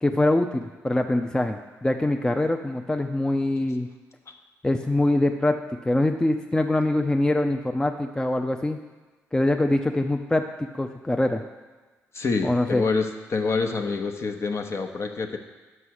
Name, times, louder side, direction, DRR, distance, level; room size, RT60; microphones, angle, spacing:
voice 1, 0.0-3.9 4.6-8.8 9.3-11.4 12.4-12.8, left 1 dB, 10° left, 5 dB, 0.5 m, -24 dB
voice 2, 12.1-15.4, left 4 dB, 45° left, 5 dB, 0.9 m, -27 dB
6.2 x 5.5 x 6.4 m, 1.3 s
supercardioid pair, 55°, 6 cm